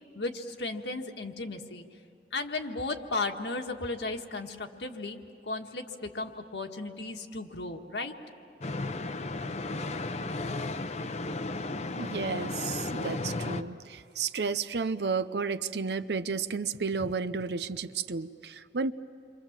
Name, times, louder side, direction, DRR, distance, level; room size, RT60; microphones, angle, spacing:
voice 1, 0.2-1.8 2.3-5.2 5.4-8.1, left 3 dB, 75° left, 4 dB, 1.7 m, -35 dB
sound 1, 8.6-13.6, left 2 dB, 40° left, 0.8 m, -34 dB
voice 2, 12.0-18.9, right 5 dB, 65° right, 13 dB, 0.7 m, -32 dB
29.0 x 24.5 x 7.4 m, 2.7 s
head